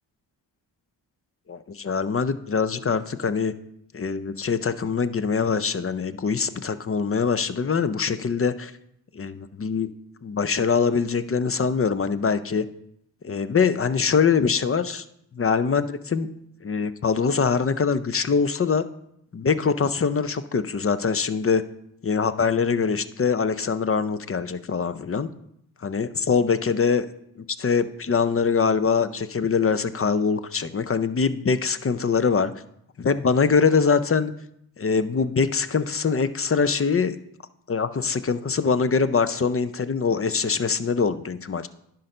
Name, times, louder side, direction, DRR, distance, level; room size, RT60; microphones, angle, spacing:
voice 1, 1.5-3.5 3.9-8.7 9.1-9.9 10.2-12.7 13.2-15.0 15.3-16.3 16.6-18.9 19.3-21.6 22.0-25.3 25.8-27.1 27.6-32.5 33.0-34.3 34.8-37.2 37.7-41.7, left 5 dB, 30° left, 13 dB, 0.6 m, -23 dB
10.5 x 3.9 x 5.4 m, 0.75 s
supercardioid pair, 45°, 44 cm